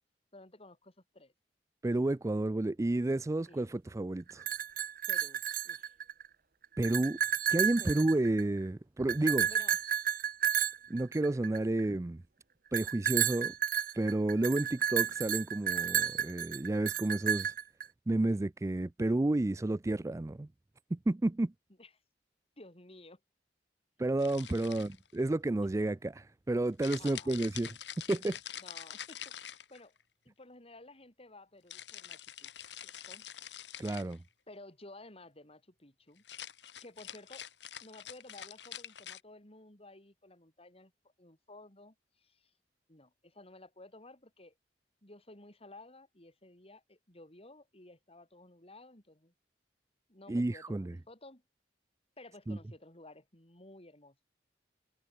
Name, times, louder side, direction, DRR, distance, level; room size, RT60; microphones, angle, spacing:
voice 1, 0.3-1.3 3.5-3.6 5.1-5.9 7.8-8.1 9.5-9.8 21.8-21.9 22.6-23.2 24.6-24.9 27.0-27.4 28.6-30.0 30.3-33.3 34.5-36.2 36.8-37.5 37.8-40.9 41.2-42.5 42.9-44.5 45.0-49.3 50.1-51.4 52.2-54.2, left 2 dB, 35° left, 5.3 m, -54 dB
voice 2, 1.8-4.4 6.8-7.2 7.5-9.5 10.9-12.2 12.7-13.5 13.9-17.5 18.1-20.5 20.9-21.5 24.0-27.7 28.1-28.4 33.8-34.2 50.3-50.9 52.5-52.6, right 2 dB, 20° right, 0.4 m, -31 dB
sound 1, 4.3-6.3 6.6-8.6 9.1-11.8 12.7-17.8, right 9 dB, 55° right, 1.5 m, -32 dB
sound 2, 24.2-25.2 26.8-30.0 31.7-34.2 36.2-39.2, left 10 dB, 90° left, 2.8 m, -46 dB
head